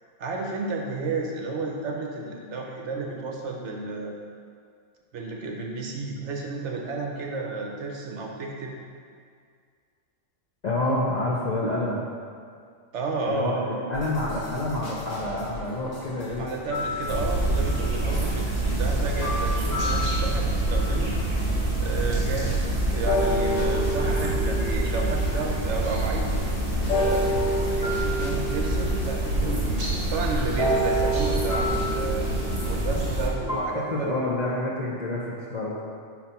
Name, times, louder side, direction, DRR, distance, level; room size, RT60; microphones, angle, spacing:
voice 1, 0.2-4.1 5.1-8.7 12.9-13.7 16.4-21.2 21.8-26.4 27.0-32.3 32.7-34.1, right 3 dB, 65° right, 0 dB, 0.9 m, -32 dB
voice 2, 10.6-12.0 13.2-16.5 18.0-18.3 33.5-35.8, left 1 dB, 50° left, -5 dB, 0.5 m, -28 dB
sound 1, 13.9-29.3, left 1 dB, 85° left, 1.5 m, -39 dB
sound 2, 16.7-17.8 19.2-20.9 21.6-21.7 23.0-25.9 26.9-29.5 30.6-34.0, equal, 30° left, 1.2 m, -29 dB
sound 3, 17.1-33.3, right 2 dB, 45° right, 1.2 m, -26 dB
4.3 x 4.2 x 5.5 m, 2.2 s
omnidirectional pair, 1.4 m